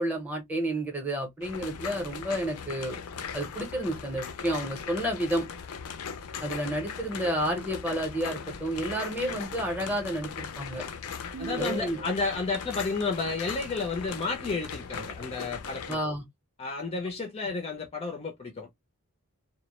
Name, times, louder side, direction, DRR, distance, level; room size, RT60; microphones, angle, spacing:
voice 1, 0.0-3.0 3.3-5.4 6.4-10.8 11.6-12.0 15.9-16.2, right 1 dB, 5° right, 0.7 m, -30 dB
sound 1, 1.4-16.0, left 6 dB, 85° left, 0.4 m, -39 dB
sound 2, 11.3-12.4, right 6 dB, 50° right, 0.3 m, -38 dB
voice 2, 11.4-16.0 16.6-18.7, left 4 dB, 25° left, 0.4 m, -32 dB
2.2 x 2.0 x 2.8 m
head